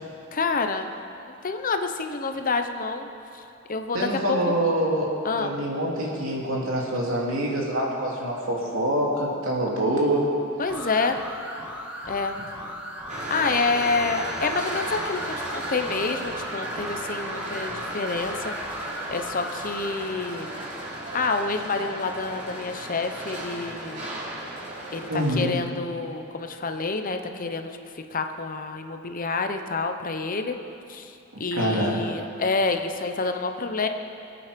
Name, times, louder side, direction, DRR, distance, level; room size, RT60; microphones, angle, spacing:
voice 1, 0.3-0.9 1.4-3.1 3.3-3.4 3.7-4.5 5.2-5.5 10.6-11.2 12.1-12.4 13.3-18.5 19.1-20.6 21.1-24.0 24.9-27.7 28.0-30.6 30.9-31.1 31.4-33.9, left 4 dB, 45° left, 6 dB, 0.9 m, -28 dB
voice 2, 3.9-5.1 5.4-10.3 25.1-25.5 31.3-32.0, right 1 dB, 75° right, -3 dB, 3.0 m, -25 dB
sound 1, 10.7-20.0, equal, 5° right, 1.8 m, -38 dB
sound 2, 13.1-25.4, right 1 dB, 40° right, 3.4 m, -35 dB
24.5 x 8.7 x 5.2 m, 2.6 s
head